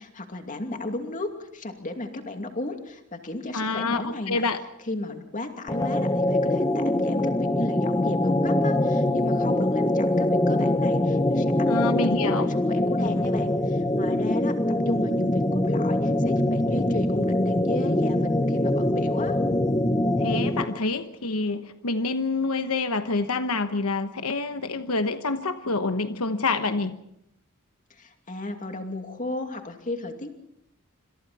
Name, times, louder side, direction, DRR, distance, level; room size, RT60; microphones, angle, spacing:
voice 1, 0.0-4.4 4.9-19.4 27.9-30.4, left 2 dB, 35° left, 5 dB, 2.6 m, -34 dB
voice 2, 3.5-4.6 11.7-12.5 20.2-27.0, left 3 dB, 85° left, 9 dB, 1.1 m, -27 dB
sound 1, 5.7-20.8, left 1 dB, 20° left, 0.9 m, -23 dB
28.0 x 25.5 x 4.2 m, 0.76 s
head